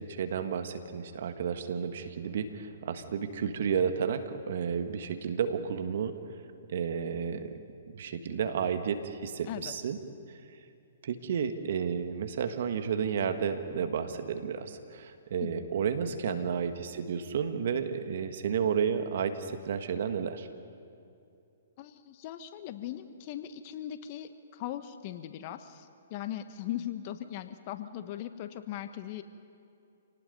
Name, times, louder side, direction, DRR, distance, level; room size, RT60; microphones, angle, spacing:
voice 1, 0.0-6.1 6.7-7.5 7.9-10.0 11.0-20.5, right 7 dB, 60° right, 8 dB, 1.7 m, -32 dB
voice 2, 21.8-29.2, left 12 dB, 40° left, 10 dB, 1.2 m, -39 dB
27.5 x 18.5 x 5.4 m, 2.6 s
hypercardioid pair, 130°, 0 cm